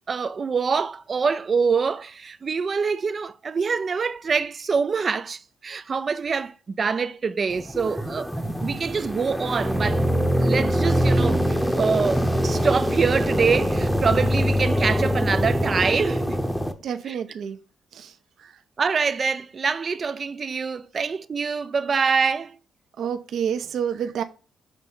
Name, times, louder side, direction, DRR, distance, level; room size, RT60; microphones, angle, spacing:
voice 1, 0.1-8.3 8.6-10.0 10.4-16.4 17.1-17.2 18.8-22.5, right 5 dB, 35° right, 0.4 m, -25 dB
sound 1, 7.5-16.7, equal, ahead, 0.8 m, -23 dB
voice 2, 16.8-17.6 17.9-18.1 18.4-18.5 23.0-24.2, right 8 dB, 65° right, 0.7 m, -28 dB
6.1 x 3.3 x 5.3 m
cardioid pair, 135°, 0 cm